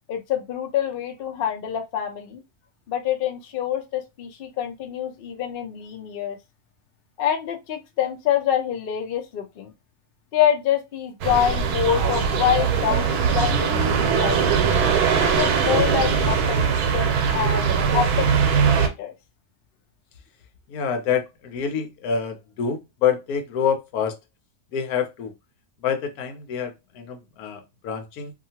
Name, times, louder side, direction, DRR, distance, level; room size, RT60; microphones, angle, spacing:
voice 1, 0.1-2.4 2.9-6.4 7.2-9.7 10.3-14.4 15.2-16.6 16.9-17.6 17.9-18.3 18.6-19.1, left 9 dB, 60° left, 0.6 m, -26 dB
sound 1, 11.2-18.9, right 6 dB, 90° right, 1.1 m, -21 dB
voice 2, 20.7-24.2 24.7-25.3 25.8-28.3, left 7 dB, 75° left, 1.1 m, -27 dB
2.7 x 2.4 x 2.7 m
omnidirectional pair, 1.6 m